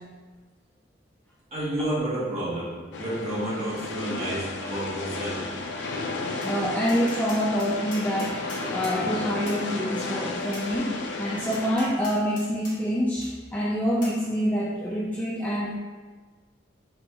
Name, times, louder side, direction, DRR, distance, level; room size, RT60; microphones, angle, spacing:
voice 1, 1.5-5.4, right 1 dB, 35° right, -9 dB, 1.5 m, -30 dB
sound 1, 2.9-11.7, left 3 dB, 70° left, 0.5 m, -33 dB
Tap, 6.4-6.5 6.9-9.0 9.5-9.6 10.5-10.7 11.5-12.7 13.2-13.3 14.0-14.2, left 1 dB, 45° left, 1.3 m, -42 dB
voice 2, 6.4-15.8, equal, 10° left, -5 dB, 0.3 m, -26 dB
3.4 x 3.0 x 4.5 m, 1.4 s
head